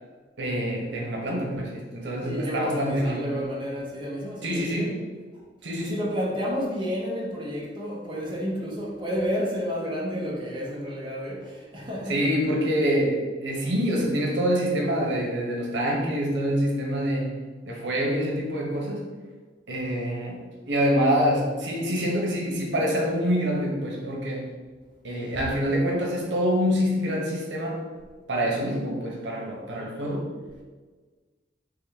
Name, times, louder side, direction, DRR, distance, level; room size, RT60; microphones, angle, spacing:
voice 1, 0.4-3.4 4.4-5.0 5.6-6.0 12.1-17.3 17.7-19.0 19.7-24.4 25.0-27.8 28.3-30.3, equal, 85° right, -1 dB, 0.9 m, -26 dB
voice 2, 2.2-4.9 5.3-5.4 5.8-12.2 15.1-15.2 25.1-25.4, equal, 30° right, -4 dB, 0.9 m, -31 dB
3.7 x 3.3 x 3.4 m, 1.4 s
head